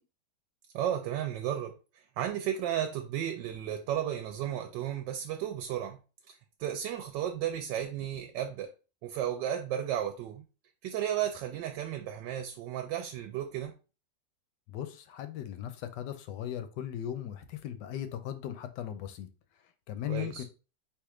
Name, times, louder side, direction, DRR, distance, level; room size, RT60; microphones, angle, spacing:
voice 1, 0.7-1.7 2.2-6.0 6.3-6.4 6.6-8.7 9.0-10.4 10.8-13.7 20.1-20.4, right 10 dB, 85° right, 1.3 m, -33 dB
voice 2, 14.7-19.3 19.9-20.4, left 11 dB, 80° left, 1.2 m, -38 dB
3.6 x 2.8 x 4.7 m
omnidirectional pair, 1.9 m